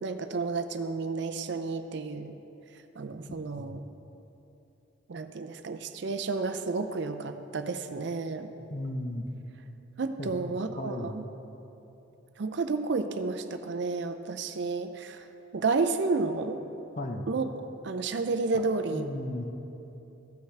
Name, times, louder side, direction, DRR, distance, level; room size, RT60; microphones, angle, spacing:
voice 1, 0.0-2.4 3.0-3.8 5.1-8.5 10.0-11.2 12.4-15.2 15.5-16.6 17.3-17.5 17.8-19.1, right 4 dB, 60° right, 8 dB, 0.4 m, -31 dB
voice 2, 8.7-9.3 10.2-10.5 10.8-11.2 17.0-17.3 18.5-18.7 18.9-19.4, left 1 dB, 35° left, 4 dB, 0.6 m, -35 dB
15.0 x 5.8 x 3.3 m, 3.0 s
head